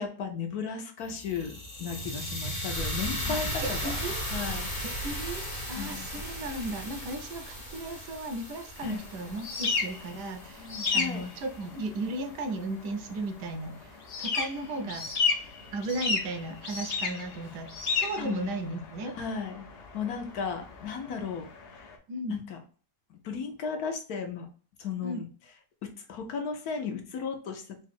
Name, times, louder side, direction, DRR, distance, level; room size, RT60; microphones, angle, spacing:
voice 1, 0.0-4.7 5.8-6.1 8.8-9.0 10.5-11.3 18.2-18.5 19.1-19.7 19.9-21.5 21.8-21.9 22.3-22.6 23.1-24.5 24.8-25.3 26.1-27.6, left 6 dB, 70° left, 4 dB, 1.3 m, -35 dB
sound 1, 1.0-11.2, equal, 35° left, 1.5 m, -36 dB
voice 2, 3.1-4.2 4.8-15.1 15.7-19.2 22.1-22.3 25.0-25.2, right 2 dB, 80° right, 7 dB, 1.3 m, -36 dB
sound 2, 8.8-21.9, left 4 dB, 55° left, 0.7 m, -34 dB
3.9 x 2.5 x 4.1 m, 0.40 s
omnidirectional pair, 1.8 m